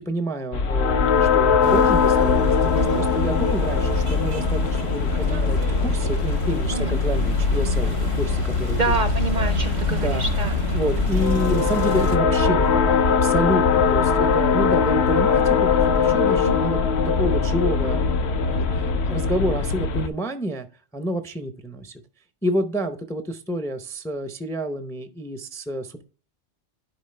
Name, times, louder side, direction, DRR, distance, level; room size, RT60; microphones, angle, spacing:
voice 1, 0.1-8.8 9.9-10.2 10.7-16.8 17.2-20.7 20.9-22.0 22.4-26.0, equal, 5° left, 9 dB, 0.4 m, -29 dB
sound 1, 0.5-20.1, left 5 dB, 70° left, 0.9 m, -21 dB
sound 2, 1.6-12.2, right 5 dB, 85° right, 1.2 m, -33 dB
voice 2, 2.7-3.1 6.7-7.0 8.8-10.7 16.4-16.8, right 4 dB, 55° right, 10 dB, 0.6 m, -28 dB
10.5 x 4.4 x 3.2 m, 0.39 s
omnidirectional pair, 1.2 m